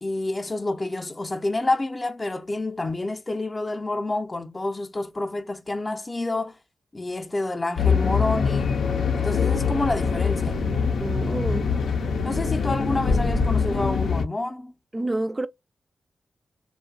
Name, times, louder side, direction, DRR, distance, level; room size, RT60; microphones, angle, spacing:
voice 1, 0.0-6.6 6.9-8.7 9.2-10.6 12.2-14.7, left 2 dB, 30° left, 0.5 m, -28 dB
sound 1, 7.8-14.2, left 5 dB, 80° left, 0.5 m, -23 dB
voice 2, 11.0-11.7 14.9-15.5, right 2 dB, 30° right, 0.3 m, -28 dB
2.7 x 2.2 x 2.2 m
cardioid pair, 50°, 0 cm